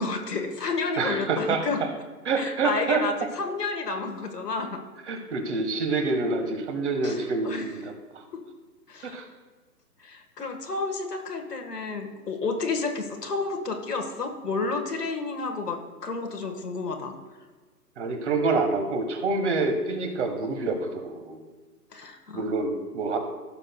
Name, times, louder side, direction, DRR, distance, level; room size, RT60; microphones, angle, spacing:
voice 1, 0.0-1.8 2.4-4.8 7.0-7.8 8.3-8.4 8.9-9.2 10.0-17.1 21.9-22.4, left 4 dB, 75° left, 4 dB, 1.6 m, -31 dB
voice 2, 1.0-1.9 2.2-3.1 5.1-8.2 9.1-9.2 18.0-21.4 22.3-23.2, right 3 dB, 45° right, 6 dB, 1.5 m, -27 dB
15.5 x 6.6 x 2.3 m, 1.4 s
figure-of-eight pair, 135°, 48 cm